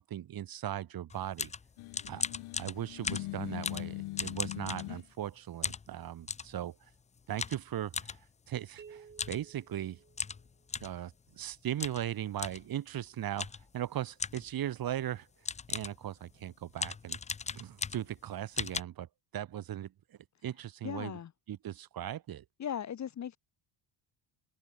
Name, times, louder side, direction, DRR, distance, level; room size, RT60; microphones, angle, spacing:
voice 1, 0.0-1.5 2.1-2.2 2.6-6.7 7.3-8.2 8.5-10.0 10.8-15.3 15.7-17.2 17.5-19.1 19.3-21.2 21.5-22.4, right 11 dB, 45° right, 1.5 m, -38 dB
sound 1, 1.1-5.3 5.6-6.5 7.4-8.2 9.1-9.4 9.7-9.8 10.2-11.0 11.8-12.1 12.4-12.7 13.4-13.7 14.2-14.5 15.1-15.2 15.5-16.0 16.7-18.2 18.6-18.8, left 5 dB, 15° left, 0.4 m, -37 dB
sound 2, 1.8-5.0, left 20 dB, 80° left, 1.2 m, -41 dB
sound 3, 8.8-10.7, right 6 dB, 20° right, 0.9 m, -55 dB
voice 2, 20.8-21.3 22.6-23.4, left 9 dB, 35° left, 1.1 m, -37 dB
open air
cardioid pair, 135°, 49 cm